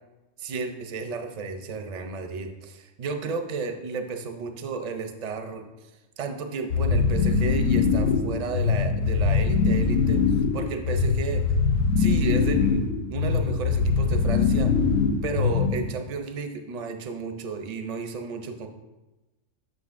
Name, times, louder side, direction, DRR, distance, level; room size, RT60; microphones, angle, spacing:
voice 1, 0.4-5.6 6.2-11.5 12.0-14.7 15.2-18.7, right 4 dB, 50° right, 6 dB, 0.4 m, -33 dB
sound 1, 6.7-15.9, left 5 dB, 85° left, 1.0 m, -22 dB
7.6 x 6.1 x 2.5 m, 1.1 s
omnidirectional pair, 1.3 m